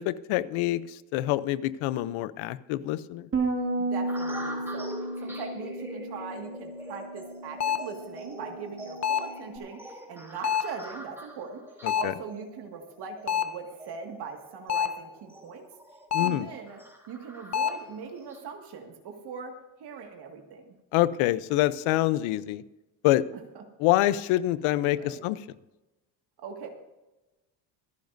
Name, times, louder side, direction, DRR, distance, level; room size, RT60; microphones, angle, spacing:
voice 1, 0.0-3.3 11.8-12.1 16.1-16.5 20.9-22.6 23.0-23.3 23.8-25.4, left 15 dB, 75° left, 16 dB, 0.8 m, -26 dB
Bass guitar, 3.3-9.6, right 2 dB, 25° right, 2.1 m, -34 dB
voice 2, 3.8-11.6 11.9-15.6 16.2-16.8 17.1-19.5 19.8-20.8 23.5-23.6 25.0-25.2 26.4-26.7, right 6 dB, 50° right, 3 dB, 2.0 m, -41 dB
sound 1, 4.1-18.4, right 1 dB, 5° right, 3.1 m, -45 dB
sound 2, 7.6-8.0 9.0-9.4 10.4-10.8 11.9-12.2 13.3-13.6 14.7-15.1 16.1-16.5 17.5-17.9, left 8 dB, 35° left, 0.9 m, -28 dB
25.0 x 10.5 x 2.7 m, 1.0 s
cardioid pair, 120°, 48 cm